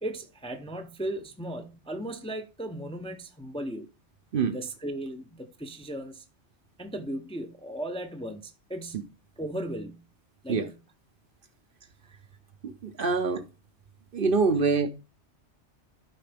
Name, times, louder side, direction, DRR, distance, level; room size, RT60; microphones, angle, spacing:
voice 1, 0.0-3.9 4.5-6.2 6.8-9.0 9.4-10.0 10.4-10.7 12.1-12.2, right 1 dB, 5° left, 0.6 m, -36 dB
voice 2, 12.6-13.4 14.1-14.9, right 4 dB, 55° right, 0.8 m, -25 dB
12.0 x 5.0 x 3.4 m
omnidirectional pair, 1.2 m